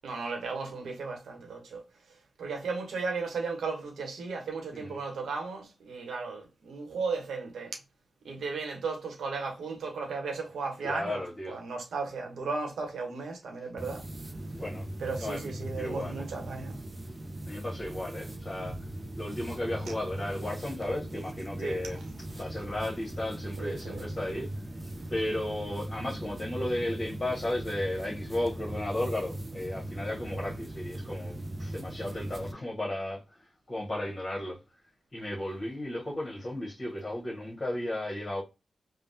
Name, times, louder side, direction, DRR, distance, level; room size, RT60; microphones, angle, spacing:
voice 1, 0.0-1.8 2.4-7.7 8.2-11.2 11.5-14.0 15.0-16.8 21.6-22.0 23.6-24.0, right 4 dB, 80° right, 0.9 m, -35 dB
voice 2, 10.8-11.6 14.5-14.9 15.2-15.5 15.7-16.3 17.5-18.8 19.2-22.0 22.4-24.5 25.1-33.2 33.7-34.6 35.1-38.4, left 1 dB, 40° left, 1.1 m, -34 dB
sound 1, 13.8-32.5, right 1 dB, 30° right, 0.5 m, -39 dB
3.3 x 2.1 x 2.6 m
supercardioid pair, 45°, 0 cm